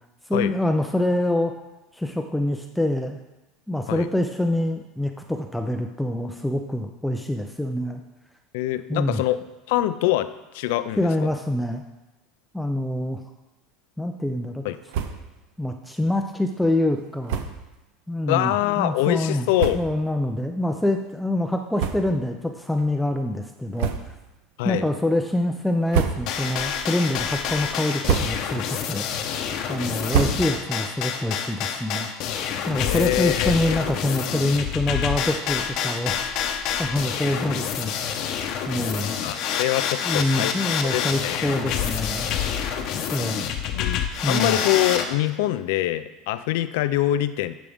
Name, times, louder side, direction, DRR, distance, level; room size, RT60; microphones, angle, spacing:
voice 1, 0.3-1.5 1.9-3.2 3.7-8.0 8.9-9.2 11.0-11.8 12.5-13.2 14.0-14.6 15.6-17.4 18.1-19.5 19.7-23.9 24.6-29.0 29.7-36.4 36.8-37.9 38.7-39.1 40.0-42.3 43.1-43.6 44.2-44.6, left 1 dB, 5° left, 4 dB, 0.4 m, -25 dB
voice 2, 8.5-9.4 9.7-11.3 14.6-14.8 18.3-19.8 24.6-24.9 32.8-33.8 39.2-40.5 40.9-41.6 43.7-47.5, left 14 dB, 80° left, 12 dB, 0.4 m, -24 dB
sound 1, 14.9-15.4 15.7-15.8 16.1-16.2 17.2-17.7 18.4-18.5 19.2-19.3 19.5-20.1 20.6-20.8 21.7-22.4 22.7-22.9 23.7-24.3 24.8-25.2 25.7-26.6 27.0-27.4 27.8-28.7 29.0-30.9, right 7 dB, 75° right, 0.6 m, -28 dB
sound 2, 26.3-45.1, left 8 dB, 55° left, 0.8 m, -27 dB
10.0 x 5.1 x 3.5 m, 1.0 s
supercardioid pair, 125°, 0 cm